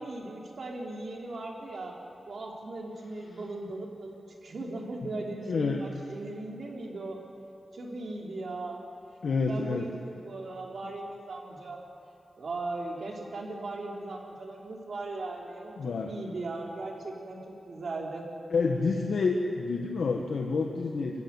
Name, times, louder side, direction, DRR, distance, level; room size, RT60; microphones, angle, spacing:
voice 1, 0.0-1.9 2.3-7.2 7.7-8.8 9.5-11.8 12.4-17.4 17.7-18.3, right 2 dB, 65° right, -1 dB, 3.7 m, -38 dB
voice 2, 5.0-5.8 9.2-9.9 15.8-16.1 18.5-21.2, left 4 dB, 85° left, 2 dB, 1.4 m, -29 dB
24.0 x 15.0 x 9.6 m, 2.6 s
wide cardioid pair, 135°, 0 cm